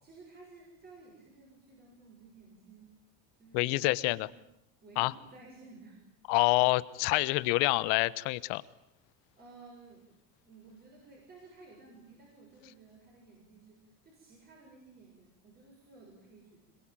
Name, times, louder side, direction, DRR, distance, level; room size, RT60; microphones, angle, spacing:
voice 1, 0.0-2.9 3.4-4.4 4.8-6.0 6.3-6.4 9.3-10.0 10.4-16.8, right 3 dB, 25° right, -1 dB, 7.0 m, -55 dB
voice 2, 3.5-4.3 5.0-5.1 6.3-8.6, left 22 dB, 80° left, 17 dB, 1.3 m, -27 dB
26.0 x 22.5 x 9.0 m, 0.75 s
cardioid pair, 170°, 40 cm